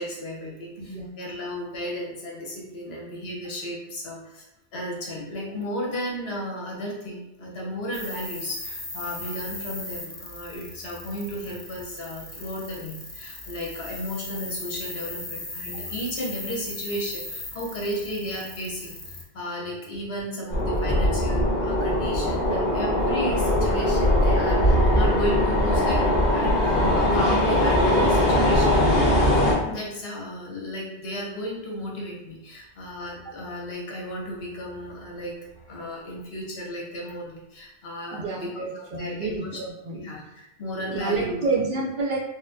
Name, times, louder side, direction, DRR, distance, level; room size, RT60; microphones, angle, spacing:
voice 1, 0.0-4.5 4.7-28.8 29.6-38.5 38.7-39.5 39.9-41.4, equal, 70° left, -3 dB, 1.1 m, -34 dB
voice 2, 0.8-1.2 22.5-22.7 22.9-23.1 38.1-40.0 40.9-42.2, right 3 dB, 60° right, -2 dB, 0.6 m, -29 dB
sound 1, 7.9-19.2, left 2 dB, 25° left, 0.4 m, -38 dB
sound 2, 20.5-29.5, left 1 dB, 45° left, 1.2 m, -21 dB
4.0 x 2.0 x 2.6 m, 0.90 s
omnidirectional pair, 1.1 m